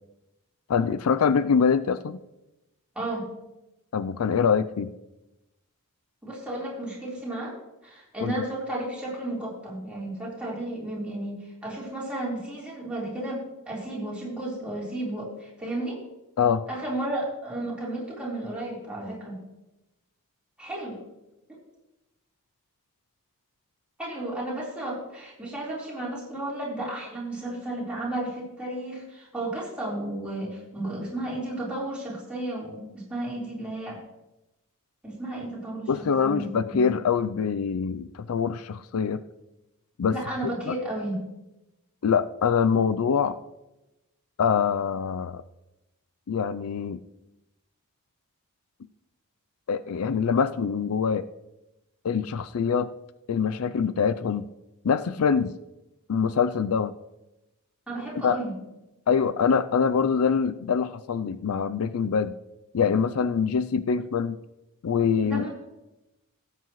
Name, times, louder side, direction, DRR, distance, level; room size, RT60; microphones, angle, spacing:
voice 1, 0.7-2.2 3.9-4.9 8.2-8.3 16.4-16.6 35.9-39.2 40.0-40.1 40.7-40.8 42.0-43.4 44.4-45.4 46.3-47.0 49.7-51.2 52.0-52.9 53.3-54.5 54.8-55.5 56.1-56.9 58.2-58.4 59.1-62.3 62.7-64.4 64.8-65.5, left 6 dB, 70° left, 13 dB, 0.4 m, -24 dB
voice 2, 2.9-3.3 6.2-7.5 7.8-16.0 16.7-19.4 20.6-21.0 24.0-34.0 35.0-36.9 40.1-41.2 57.9-58.5 65.2-65.5, right 1 dB, 5° right, -6 dB, 3.9 m, -33 dB
17.5 x 8.3 x 3.1 m, 0.95 s
head